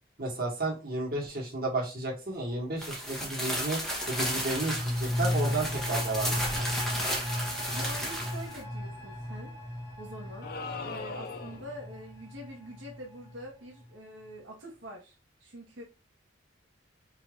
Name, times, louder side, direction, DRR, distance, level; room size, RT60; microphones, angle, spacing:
voice 1, 0.2-6.7, right 2 dB, 50° right, -4 dB, 1.8 m, -33 dB
sound 1, 2.8-8.6, equal, 5° left, 1.0 m, -33 dB
sound 2, 4.1-13.5 13.8-13.9, left 1 dB, 20° right, 1.8 m, -35 dB
voice 2, 7.7-9.5 10.0-10.5 10.8-15.1 15.4-15.8, equal, 90° right, -2 dB, 1.3 m, -45 dB
sound 3, 10.4-11.8, left 4 dB, 50° left, 0.4 m, -39 dB
4.8 x 3.4 x 2.5 m, 0.29 s
head